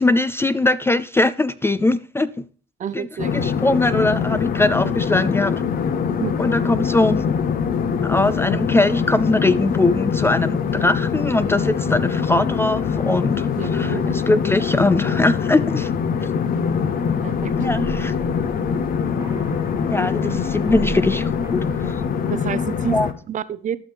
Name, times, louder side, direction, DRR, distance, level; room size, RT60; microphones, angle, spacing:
voice 1, 0.0-2.3 2.9-3.1 3.3-5.5 6.4-7.3 8.0-15.9 17.6-18.1 19.9-21.9 22.9-23.1, left 2 dB, 15° left, 0.4 m, -21 dB
voice 2, 2.8-3.3 6.1-6.4 13.6-14.1 17.2-17.6 22.3-23.0 23.3-23.8, right 9 dB, 45° right, 0.7 m, -29 dB
sound 1, 3.2-23.1, left 6 dB, 50° left, 0.9 m, -23 dB
sound 2, 16.7-22.1, right 4 dB, 15° right, 0.9 m, -35 dB
12.5 x 5.8 x 3.4 m
hypercardioid pair, 65°, 19 cm